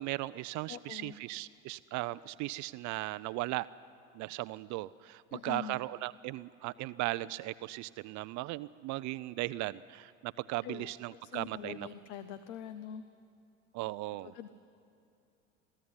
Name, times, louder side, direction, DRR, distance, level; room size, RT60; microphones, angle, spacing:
voice 1, 0.0-3.7 4.1-11.9 13.7-14.3, right 18 dB, 50° right, 15 dB, 0.5 m, -37 dB
voice 2, 0.7-1.2 5.3-5.8 10.6-13.0 14.2-14.5, left 9 dB, 70° left, 12 dB, 0.9 m, -44 dB
23.5 x 14.0 x 9.6 m, 2.5 s
hypercardioid pair, 75°, 38 cm